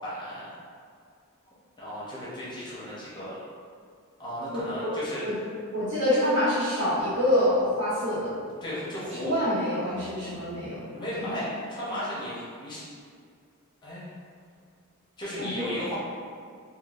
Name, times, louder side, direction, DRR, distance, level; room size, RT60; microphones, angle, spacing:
voice 1, 0.0-0.5 1.8-3.4 4.2-5.2 8.6-9.3 10.9-12.8 13.8-14.1 15.2-15.9, left 1 dB, 20° left, -8 dB, 0.7 m, -35 dB
voice 2, 4.5-4.9 5.2-5.3 5.7-8.4 9.2-10.8 11.2-11.3 15.4-15.6, left 1 dB, 60° right, -11 dB, 1.4 m, -26 dB
3.7 x 2.2 x 2.4 m, 2.2 s
head